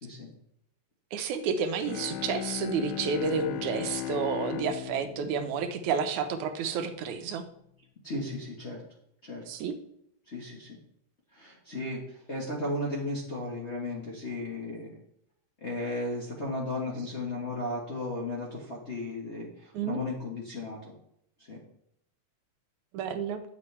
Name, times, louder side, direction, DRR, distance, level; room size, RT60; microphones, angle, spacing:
voice 1, 1.1-7.4 9.5-9.8 19.7-20.0 22.9-23.4, right 6 dB, 85° right, 8 dB, 2.2 m, -30 dB
Bowed string instrument, 1.8-6.7, left 12 dB, 80° left, 1.9 m, -37 dB
voice 2, 8.0-8.8 9.2-9.4 10.3-10.8 11.3-15.0 15.6-21.0 21.5-21.6, left 2 dB, 55° left, -5 dB, 0.7 m, -35 dB
9.9 x 7.1 x 3.3 m, 0.74 s
omnidirectional pair, 3.4 m